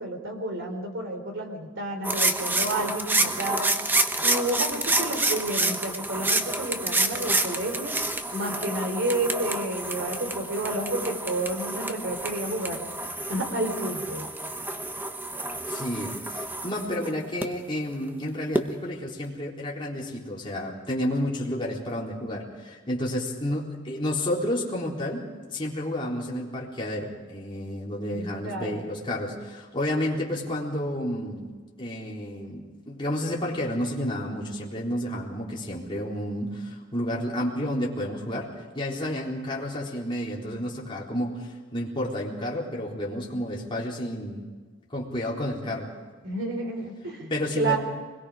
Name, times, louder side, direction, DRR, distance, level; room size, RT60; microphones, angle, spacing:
voice 1, 0.0-3.7 4.2-8.0 8.3-12.8 13.3-14.3 28.1-28.8 46.2-47.8, right 2 dB, 65° right, 4 dB, 3.7 m, -30 dB
sound 1, 2.0-17.5 18.5-18.7, right 2 dB, 10° right, 1.0 m, -28 dB
voice 2, 15.7-38.5 38.7-44.5 44.9-45.9 47.3-47.8, left 1 dB, 25° left, -4 dB, 3.8 m, -31 dB
24.5 x 21.5 x 5.0 m, 1.4 s
head